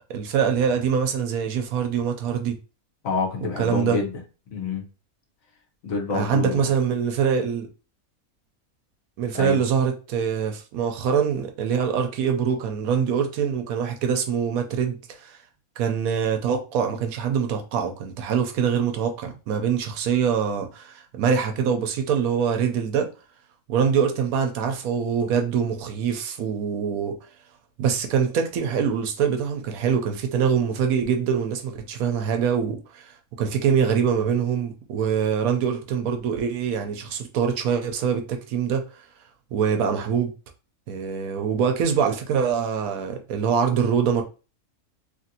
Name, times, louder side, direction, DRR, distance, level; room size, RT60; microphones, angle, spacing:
voice 1, 0.1-2.6 3.6-4.0 6.1-7.7 9.2-15.4 15.8-23.1 23.7-27.1 27.8-38.8 39.5-40.3 40.9-44.2, right 7 dB, 85° right, 1.1 m, -24 dB
voice 2, 3.0-4.1 4.5-4.9 5.8-6.7 9.3-9.6, left 4 dB, 70° left, 1.3 m, -27 dB
3.1 x 2.5 x 2.7 m
omnidirectional pair, 1.5 m